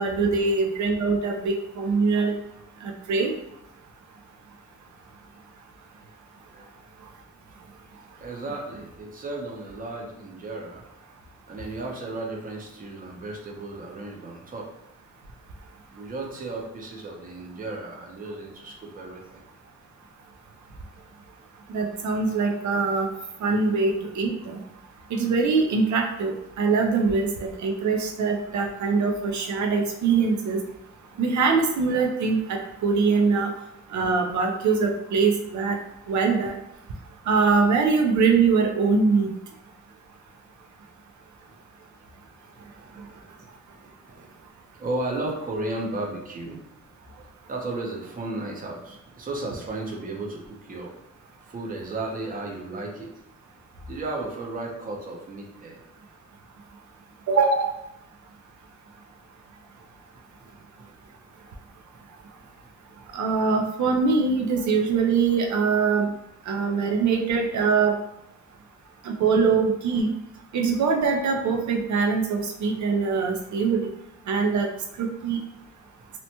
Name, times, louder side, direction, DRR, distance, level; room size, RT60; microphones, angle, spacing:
voice 1, 0.0-2.3 2.8-3.3 21.7-23.1 23.4-24.6 25.1-30.6 31.2-33.5 33.9-35.8 36.1-36.5 37.3-39.3 57.3-57.7 63.1-66.1 66.5-67.9 69.0-70.1 70.5-73.8 74.3-74.7 75.0-75.4, right 4 dB, 75° right, 2 dB, 0.5 m, -23 dB
voice 2, 8.2-10.8 11.5-14.7 15.9-19.4 23.5-23.6 41.5-41.6 42.4-44.5 44.7-46.6 47.5-50.9 51.4-53.1 53.9-55.8 60.4-61.1 61.9-62.0 62.4-62.5 76.0-76.1, right 2 dB, 30° right, 0 dB, 0.5 m, -35 dB
2.8 x 2.1 x 2.8 m, 0.81 s
wide cardioid pair, 130°, 29 cm